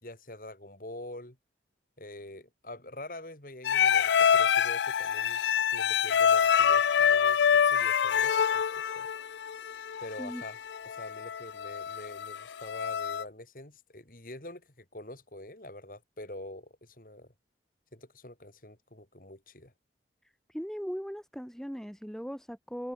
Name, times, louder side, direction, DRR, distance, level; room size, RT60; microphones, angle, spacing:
voice 1, 0.0-1.4 2.0-5.4 5.7-9.1 10.0-10.6 10.9-17.3 17.9-19.7, left 1 dB, 50° left, 4.0 m, -46 dB
sound 1, 3.7-13.2, left 7 dB, 80° left, 0.4 m, -26 dB
voice 2, 20.5-22.9, equal, 5° left, 1.6 m, -38 dB
head